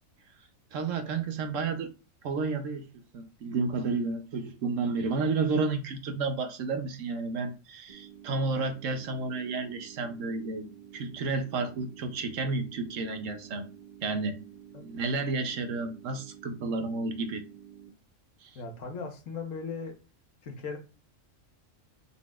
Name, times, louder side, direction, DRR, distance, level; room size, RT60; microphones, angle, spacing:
voice 1, 0.7-1.9 2.2-2.8 3.1-10.6 10.9-13.7 14.0-14.4 14.8-17.4 18.4-18.5, right 3 dB, 70° right, 1.1 m, -31 dB
sound 1, 7.9-17.9, right 10 dB, 30° right, 0.9 m, -50 dB
voice 2, 18.5-19.9 20.4-20.8, left 5 dB, 70° left, 1.4 m, -38 dB
5.5 x 3.9 x 2.4 m
omnidirectional pair, 1.4 m